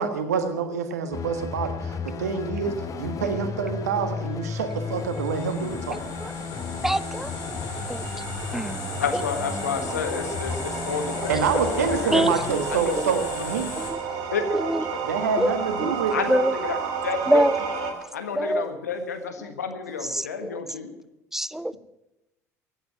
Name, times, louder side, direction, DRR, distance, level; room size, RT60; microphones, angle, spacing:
voice 1, 0.0-6.0 11.3-13.8 15.0-16.1, right 6 dB, 80° right, 9 dB, 1.6 m, -27 dB
sound 1, 1.1-12.5, left 5 dB, 40° left, 2.0 m, -34 dB
sound 2, 4.7-17.9, right 5 dB, 60° right, 3.1 m, -33 dB
sound 3, 4.8-13.9, left 5 dB, 65° left, 4.5 m, -39 dB
voice 2, 6.8-7.3 7.9-8.0 8.5-8.9 12.1-12.3 14.7-14.8 15.4-15.5 15.8-15.9 16.3-16.5 17.3-17.6 18.4-18.6 20.2-20.3 21.3-21.8, right 1 dB, 5° right, 19 dB, 0.7 m, -23 dB
voice 3, 9.0-12.3 12.7-12.9 14.3-15.0 16.1-16.8 17.0-17.4 18.1-20.9, left 5 dB, 85° left, 7 dB, 1.7 m, -30 dB
15.5 x 9.3 x 8.9 m, 0.96 s
figure-of-eight pair, 65°, 9 cm